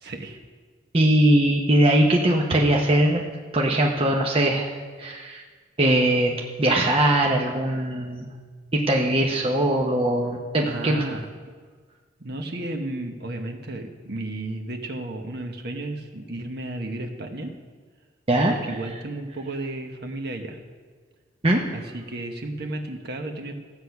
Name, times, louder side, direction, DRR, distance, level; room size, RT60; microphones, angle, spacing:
voice 1, 0.0-0.4 10.7-11.3 12.2-17.5 18.5-20.6 21.7-23.5, right 2 dB, 55° right, 4 dB, 1.3 m, -33 dB
voice 2, 0.9-3.3 3.5-4.7 5.0-5.4 5.8-6.3 6.6-8.3 8.7-11.0 18.3-18.5 21.4-21.6, right 1 dB, 30° right, 0 dB, 0.9 m, -20 dB
15.0 x 8.1 x 5.9 m, 1.5 s
head